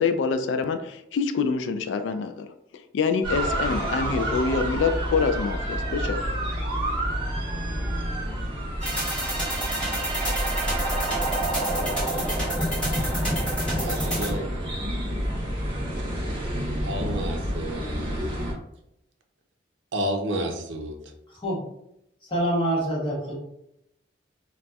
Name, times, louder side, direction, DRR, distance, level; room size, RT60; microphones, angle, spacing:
voice 1, 0.0-2.5 2.9-6.2, left 5 dB, 85° left, 8 dB, 0.3 m, -25 dB
sound 1, 3.2-18.5, right 1 dB, 25° right, 0.9 m, -29 dB
sound 2, 8.8-14.4, right 1 dB, 5° left, 1.1 m, -28 dB
voice 2, 13.8-14.5 16.8-17.9 19.9-21.0, right 1 dB, 85° right, 4 dB, 0.5 m, -30 dB
voice 3, 22.3-23.4, right 1 dB, 25° left, -5 dB, 1.1 m, -26 dB
4.0 x 2.3 x 2.3 m, 0.80 s
head